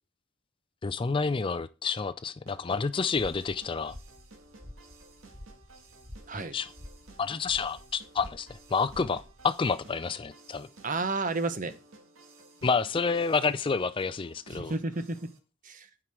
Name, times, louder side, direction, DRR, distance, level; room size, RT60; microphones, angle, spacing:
voice 1, 0.8-3.9 6.3-6.7 7.2-10.7 12.6-14.7, left 5 dB, 25° left, 0.3 m, -29 dB
sound 1, 2.5-15.4, right 3 dB, 85° right, 1.8 m, -55 dB
sound 2, 3.1-9.5, left 1 dB, 10° right, 1.4 m, -49 dB
voice 2, 10.8-11.7 14.5-15.3 15.6-15.9, right 3 dB, 40° right, 0.9 m, -31 dB
8.9 x 4.8 x 6.2 m
head